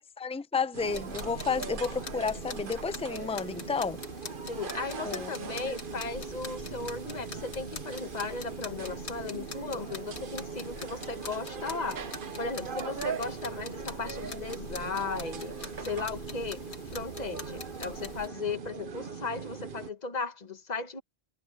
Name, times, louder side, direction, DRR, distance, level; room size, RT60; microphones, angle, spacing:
voice 1, 0.0-4.0 5.0-5.3, left 5 dB, 5° left, 0.6 m, -31 dB
sound 1, 0.7-19.9, right 5 dB, 55° right, 1.1 m, -40 dB
sound 2, 0.8-18.3, left 3 dB, 80° left, 2.3 m, -44 dB
voice 2, 4.5-16.6 16.9-21.0, left 4 dB, 40° left, 1.4 m, -36 dB
omnidirectional pair, 1.1 m